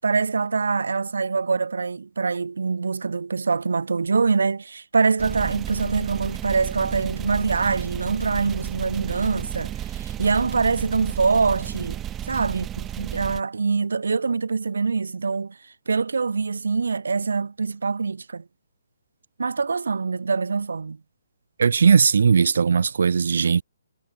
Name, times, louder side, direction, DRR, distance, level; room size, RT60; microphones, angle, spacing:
voice 1, 0.0-12.0 12.2-15.6 15.9-18.4 19.4-21.0, right 4 dB, 90° right, 6.3 m, -24 dB
sound 1, 5.2-13.4, right 11 dB, 10° right, 4.7 m, -33 dB
voice 2, 21.6-23.6, right 6 dB, 70° right, 2.4 m, -18 dB
hypercardioid pair, 165°, 0 cm